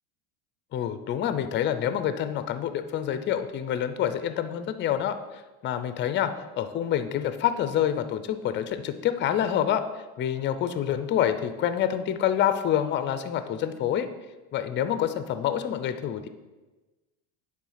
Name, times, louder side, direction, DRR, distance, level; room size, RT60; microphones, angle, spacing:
voice 1, 0.7-9.8 10.2-14.1 14.5-16.3, left 10 dB, 30° left, 10 dB, 0.5 m, -27 dB
8.9 x 3.8 x 5.7 m, 1.2 s
supercardioid pair, 125°, 38 cm